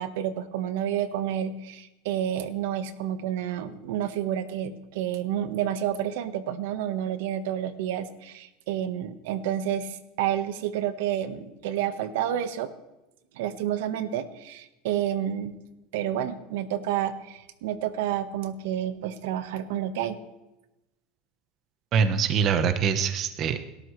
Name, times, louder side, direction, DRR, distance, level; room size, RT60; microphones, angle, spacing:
voice 1, 0.0-12.7 13.3-15.6 15.9-20.2, right 10 dB, 75° right, 10 dB, 1.2 m, -30 dB
voice 2, 21.9-23.6, right 6 dB, 35° right, 9 dB, 0.9 m, -24 dB
29.5 x 13.0 x 3.2 m, 0.97 s
supercardioid pair, 155°, 0 cm